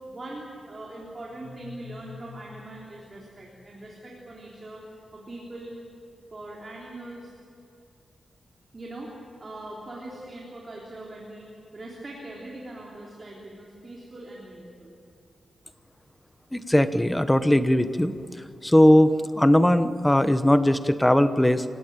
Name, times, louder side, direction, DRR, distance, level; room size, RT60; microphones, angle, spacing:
voice 1, 0.0-5.8 6.3-7.3 8.7-9.1 9.4-11.5 11.7-14.9, right 1 dB, 30° right, -3 dB, 3.6 m, -41 dB
sound 1, 1.3-4.1, left 5 dB, 80° left, 2.4 m, -47 dB
voice 2, 16.5-18.1 18.6-21.6, left 1 dB, 5° left, 11 dB, 0.9 m, -19 dB
29.5 x 17.0 x 8.9 m, 2.5 s
wide cardioid pair, 160°, 0 cm